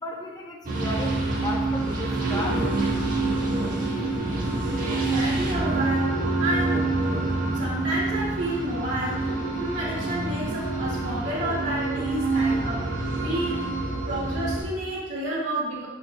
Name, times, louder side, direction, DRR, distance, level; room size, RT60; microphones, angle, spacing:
voice 1, 0.0-2.6, left 2 dB, 20° left, 0 dB, 0.8 m, -34 dB
sound 1, 0.6-14.6, right 2 dB, 50° right, 1.5 m, -26 dB
voice 2, 5.1-7.2 7.5-12.9 13.2-13.7 14.1-15.9, right 1 dB, 85° right, -7 dB, 2.0 m, -30 dB
6.8 x 6.4 x 2.2 m, 1.1 s
head